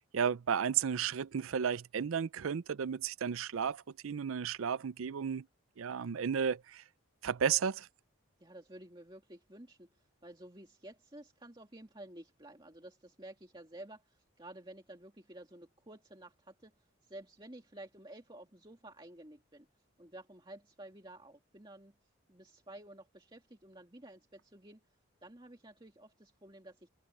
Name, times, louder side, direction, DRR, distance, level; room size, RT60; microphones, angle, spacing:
voice 1, 0.1-5.4 5.8-6.8 7.2-7.9, right 7 dB, 75° right, 0.5 m, -33 dB
voice 2, 8.4-19.7 20.0-21.9 22.3-24.9 25.2-26.9, right 1 dB, 20° right, 2.3 m, -52 dB
head